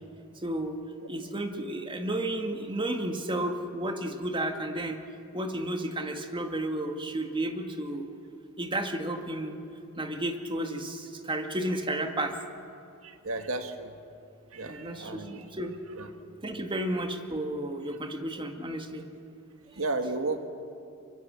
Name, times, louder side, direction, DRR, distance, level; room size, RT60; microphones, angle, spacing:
voice 1, 0.4-0.8 1.1-5.0 5.3-8.0 8.6-9.6 10.0-12.3 14.6-15.7 16.4-19.0, right 1 dB, 25° right, 5 dB, 1.9 m, -32 dB
voice 2, 13.0-14.0 14.5-15.4 15.9-16.1 19.7-20.4, right 2 dB, 70° right, 7 dB, 1.9 m, -33 dB
24.5 x 23.0 x 7.6 m, 2.5 s
head